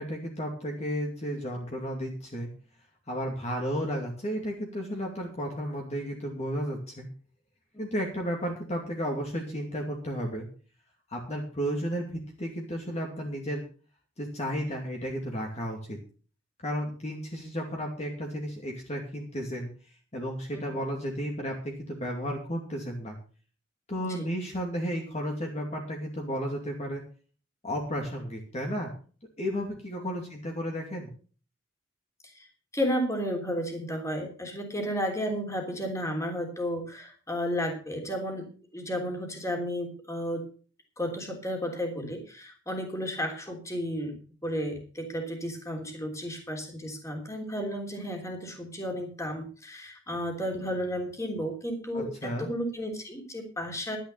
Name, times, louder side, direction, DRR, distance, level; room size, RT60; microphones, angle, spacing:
voice 1, 0.0-2.5 3.1-7.1 7.8-10.5 11.1-13.6 14.2-16.0 16.6-19.7 20.1-23.2 23.9-27.0 27.6-28.9 29.4-31.1 51.9-52.5, equal, 35° left, 0 dB, 2.5 m, -33 dB
voice 2, 32.7-40.4 41.0-44.2 44.4-54.0, equal, 15° left, 2 dB, 3.3 m, -33 dB
12.0 x 10.0 x 5.5 m, 0.40 s
head